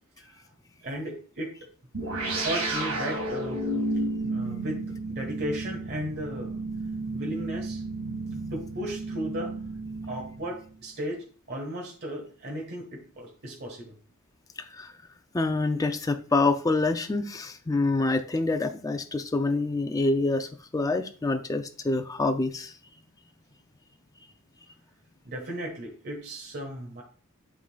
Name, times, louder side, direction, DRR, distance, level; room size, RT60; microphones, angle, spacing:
voice 1, 0.8-1.6 2.4-3.6 4.2-4.8 5.1-6.6 7.1-7.8 8.5-9.5 10.0-14.0 25.2-27.0, equal, 50° right, -1 dB, 1.3 m, -35 dB
sound 1, 1.9-10.8, right 2 dB, 75° right, 1.8 m, -32 dB
voice 2, 15.3-22.7, left 3 dB, 15° left, 7 dB, 0.4 m, -26 dB
11.5 x 3.8 x 2.3 m, 0.41 s
head